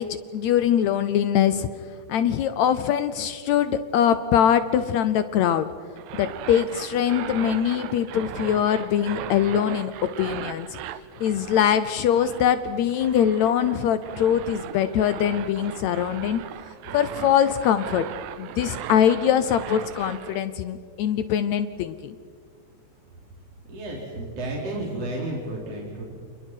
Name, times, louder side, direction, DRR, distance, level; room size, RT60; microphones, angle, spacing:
voice 1, 0.0-1.7 2.1-5.7 6.1-10.7 11.2-16.4 16.9-18.1 18.4-22.2, left 9 dB, 75° left, 12 dB, 1.8 m, -22 dB
sound 1, 6.0-20.4, right 11 dB, 75° right, 2.2 m, -38 dB
voice 2, 23.7-26.0, right 1 dB, 50° right, -2 dB, 4.3 m, -32 dB
30.0 x 28.0 x 4.6 m, 2.1 s
omnidirectional pair, 3.6 m